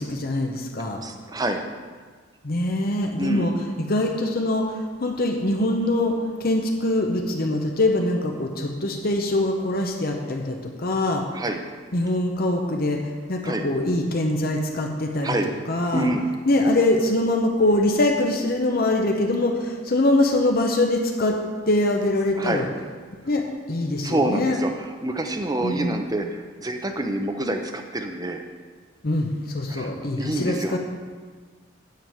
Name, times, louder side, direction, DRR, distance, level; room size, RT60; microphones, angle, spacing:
voice 1, 0.0-1.0 2.4-3.5 3.8-11.2 11.9-13.0 13.3-15.3 15.7-16.1 16.5-21.4 21.7-22.7 23.2-24.6 25.6-26.0 29.0-30.8, left 1 dB, 45° left, 2 dB, 0.8 m, -23 dB
voice 2, 1.0-1.6 3.2-3.5 11.3-11.6 13.4-13.6 15.2-15.5 15.9-16.2 22.4-22.6 24.0-28.4 29.7-30.8, right 1 dB, 20° right, 5 dB, 0.7 m, -27 dB
9.2 x 5.2 x 7.8 m, 1.5 s
head